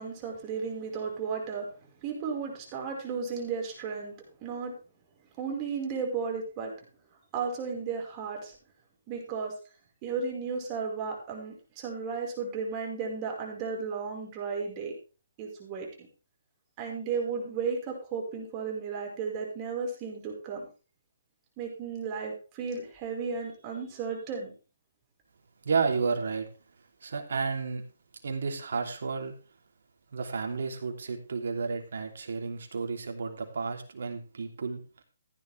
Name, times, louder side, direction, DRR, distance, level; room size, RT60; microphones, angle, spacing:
voice 1, 0.0-1.7 2.0-4.7 5.4-6.7 7.3-8.5 9.1-9.5 10.0-14.9 15.4-15.9 16.8-20.6 21.6-24.5, right 5 dB, 25° right, 0 dB, 5.0 m, -34 dB
voice 2, 25.6-26.5 27.0-27.8 28.2-29.3 30.1-34.8, right 4 dB, 65° right, 4 dB, 3.2 m, -31 dB
15.0 x 10.5 x 3.5 m, 0.34 s
hypercardioid pair, 150°, 0 cm